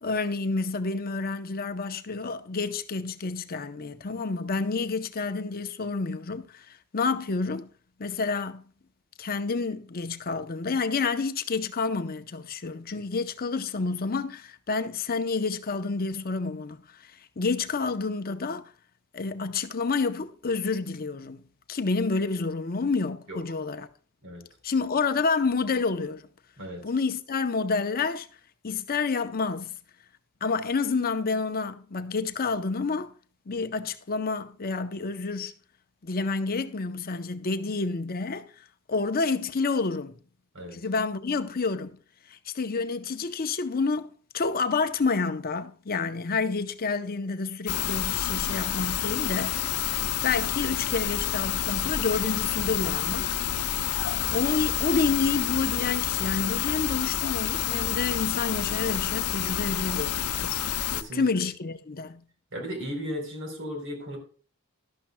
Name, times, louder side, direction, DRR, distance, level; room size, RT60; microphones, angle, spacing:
voice 1, 0.0-7.7 8.0-8.6 9.2-18.7 19.1-21.4 21.7-23.9 24.6-26.3 26.8-28.3 28.6-29.8 30.4-33.1 33.5-35.5 36.0-40.2 40.7-42.0 42.3-49.9 50.2-53.3 54.3-60.6 61.1-62.2, left 4 dB, 40° left, 0.7 m, -29 dB
sound 1, 47.7-61.0, left 10 dB, 85° left, 0.7 m, -29 dB
voice 2, 60.9-61.3 62.5-64.2, equal, 55° right, 3.7 m, -35 dB
12.0 x 11.5 x 2.2 m
head